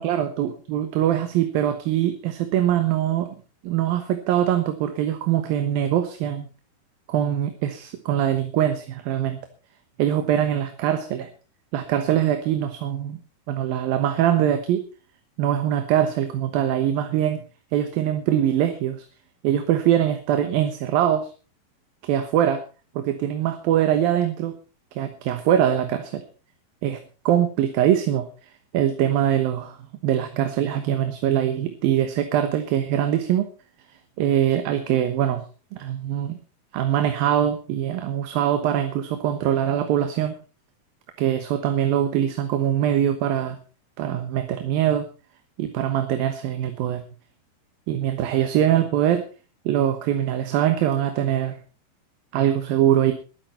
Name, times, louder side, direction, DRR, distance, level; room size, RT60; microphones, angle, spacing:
voice 1, 0.0-3.3 3.6-6.5 7.1-9.4 10.0-11.3 11.7-13.2 13.5-14.8 15.4-17.4 17.7-19.1 19.4-21.3 22.0-22.6 23.0-24.5 25.0-26.2 26.8-27.0 27.3-28.3 28.7-29.8 30.0-33.5 34.2-35.4 35.7-36.4 36.7-40.4 41.2-43.6 44.0-45.1 45.6-47.0 47.9-49.2 49.7-51.6 52.3-53.1, right 11 dB, 70° right, 8 dB, 2.9 m, -22 dB
21.5 x 9.9 x 4.3 m, 0.35 s
omnidirectional pair, 4.5 m